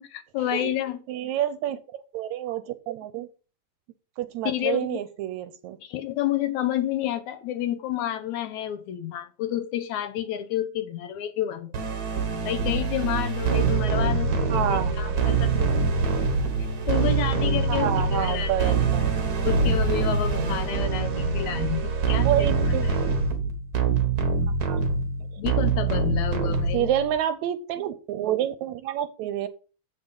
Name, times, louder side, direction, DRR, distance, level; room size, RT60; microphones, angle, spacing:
voice 1, 0.0-1.0 4.5-5.0 5.8-11.7 12.4-15.9 16.9-18.7 19.5-22.5 22.9-23.1 25.4-26.9, left 12 dB, 75° left, 2.1 m, -30 dB
voice 2, 1.1-3.3 4.2-5.8 14.5-15.2 17.7-19.0 22.3-22.9 24.7-24.8 26.7-29.5, right 11 dB, 75° right, 1.8 m, -28 dB
sound 1, 11.7-27.2, right 4 dB, 50° right, 1.2 m, -24 dB
7.7 x 6.1 x 5.2 m
omnidirectional pair, 3.6 m